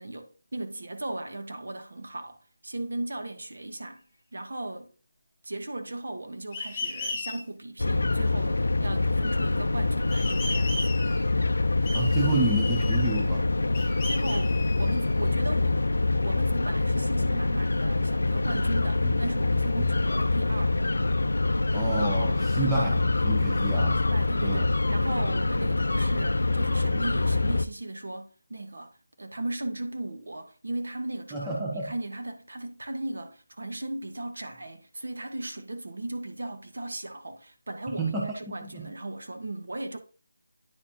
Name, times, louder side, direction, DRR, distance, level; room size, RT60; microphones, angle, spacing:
voice 1, 0.0-4.0 4.3-4.9 5.4-11.0 14.0-20.8 24.0-40.0, right 2 dB, 60° right, 1.1 m, -37 dB
sound 1, 6.5-7.4 10.1-11.3 11.9-13.3 13.7-15.3, left 3 dB, 10° left, 1.9 m, -36 dB
sound 2, 7.8-27.7, left 2 dB, 85° left, 0.4 m, -25 dB
voice 2, 11.9-13.4 19.0-19.1 19.8-19.9 21.7-24.0 24.4-24.7 31.3-31.8 38.0-38.3 38.7-38.9, right 2 dB, 5° right, 0.5 m, -29 dB
9.7 x 4.7 x 2.7 m
figure-of-eight pair, 180°, 0 cm